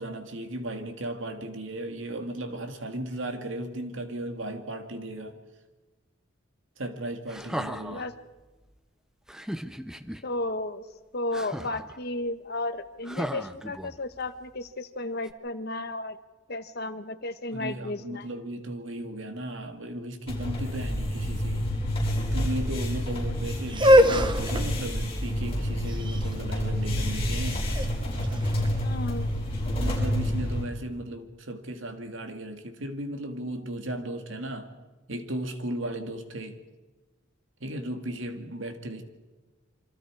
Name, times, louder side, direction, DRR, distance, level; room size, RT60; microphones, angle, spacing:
voice 1, 0.0-5.4 6.8-8.1 17.5-21.7 22.3-27.7 29.7-34.7 35.1-36.6 37.6-39.0, right 1 dB, 75° right, 2.3 m, -36 dB
sound 1, 7.3-8.1 9.3-10.2 11.3-12.0 13.0-14.2 15.2-15.3, equal, 5° right, 0.8 m, -36 dB
voice 2, 10.2-10.8 11.1-16.2 16.5-18.3 28.8-29.5, left 2 dB, 55° left, 1.3 m, -33 dB
sound 2, 20.3-30.6, equal, 30° left, 6.6 m, -29 dB
sound 3, 23.7-29.6, equal, 25° right, 1.1 m, -24 dB
27.5 x 25.0 x 4.8 m
head